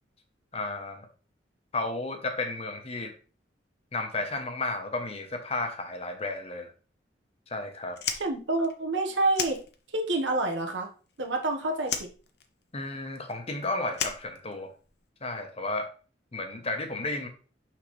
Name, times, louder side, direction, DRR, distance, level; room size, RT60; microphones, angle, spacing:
voice 1, 0.5-1.1 1.7-3.1 3.9-6.7 7.5-8.0 12.7-14.7 15.2-15.9 16.3-17.3, left 2 dB, 35° left, 6 dB, 1.0 m, -33 dB
Fire, 7.9-10.2 10.5-11.5 11.8-15.0, left 7 dB, 60° left, 0.8 m, -35 dB
voice 2, 8.2-9.6 9.9-10.9 11.2-12.1, right 2 dB, 90° right, 2 dB, 1.4 m, -28 dB
6.0 x 5.7 x 3.3 m, 0.37 s
head